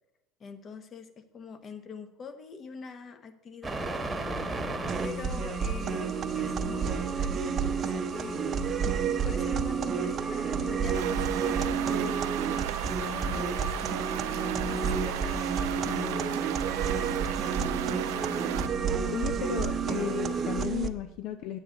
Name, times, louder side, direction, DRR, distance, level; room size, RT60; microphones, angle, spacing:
voice 1, 0.4-4.4 5.0-8.4 9.2-12.4 13.0-13.8 14.6-17.2, left 5 dB, 40° left, 9 dB, 1.1 m, -44 dB
sound 1, 3.6-20.7, right 1 dB, 20° right, 1.2 m, -39 dB
sound 2, 4.9-20.9, right 6 dB, 40° right, 0.7 m, -30 dB
sound 3, 10.9-18.7, right 15 dB, 85° right, 0.3 m, -36 dB
voice 2, 19.1-21.6, left 10 dB, 65° left, 9 dB, 0.6 m, -34 dB
9.1 x 8.6 x 3.9 m, 0.97 s
supercardioid pair, 90°, 0 cm